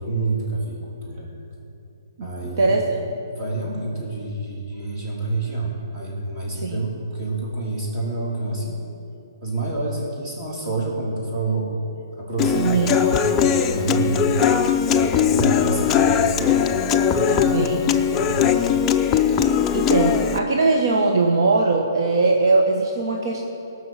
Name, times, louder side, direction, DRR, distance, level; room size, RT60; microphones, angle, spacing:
voice 1, 0.0-1.3 2.2-2.8 3.3-8.8 9.4-11.7 12.2-14.6 14.9-16.6 17.1-18.4, right 2 dB, 30° right, -4 dB, 3.5 m, -28 dB
voice 2, 2.6-3.0 6.5-6.8 12.5-13.0 17.5-17.8 19.7-23.4, right 3 dB, 60° right, 1 dB, 1.2 m, -20 dB
Human voice / Acoustic guitar, 12.4-20.4, left 8 dB, 15° left, 0.4 m, -20 dB
17.0 x 6.4 x 7.4 m, 2.8 s
hypercardioid pair, 155°, 2 cm